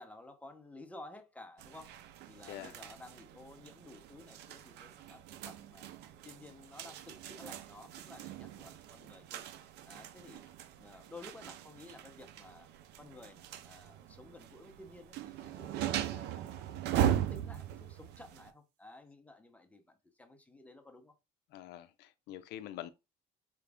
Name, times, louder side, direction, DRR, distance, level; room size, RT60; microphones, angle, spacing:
voice 1, 0.0-1.9 2.3-5.9 6.2-9.4 9.9-10.5 10.8-12.7 13.0-16.6 16.9-21.2, left 2 dB, 10° left, 0.8 m, -53 dB
sound 1, 1.6-18.5, right 10 dB, 80° right, 0.5 m, -39 dB
voice 2, 21.5-22.9, left 13 dB, 80° left, 0.4 m, -45 dB
5.0 x 2.3 x 3.5 m
cardioid pair, 110°, 17 cm